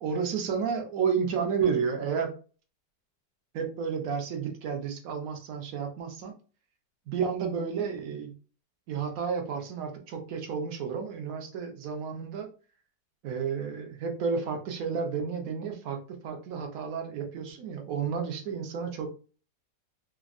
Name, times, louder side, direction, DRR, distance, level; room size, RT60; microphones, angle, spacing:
voice 1, 0.0-2.4 3.5-6.3 7.1-8.3 8.9-12.5 13.2-19.1, right 6 dB, 65° right, 4 dB, 0.9 m, -31 dB
3.4 x 2.1 x 2.4 m, 0.37 s
omnidirectional pair, 1.9 m